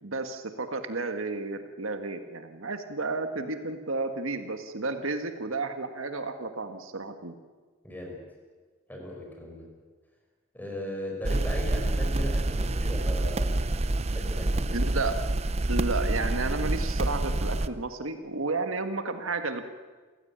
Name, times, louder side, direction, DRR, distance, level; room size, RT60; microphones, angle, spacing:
voice 1, 0.0-7.4 14.7-15.2 15.7-19.6, right 3 dB, 80° right, 7 dB, 1.7 m, -32 dB
voice 2, 7.8-8.2 8.9-9.7 10.5-13.7 14.1-14.8, equal, 10° left, 0 dB, 5.6 m, -37 dB
sound 1, 11.2-17.7, right 2 dB, 30° right, 0.7 m, -27 dB
28.5 x 16.0 x 8.9 m, 1.4 s
head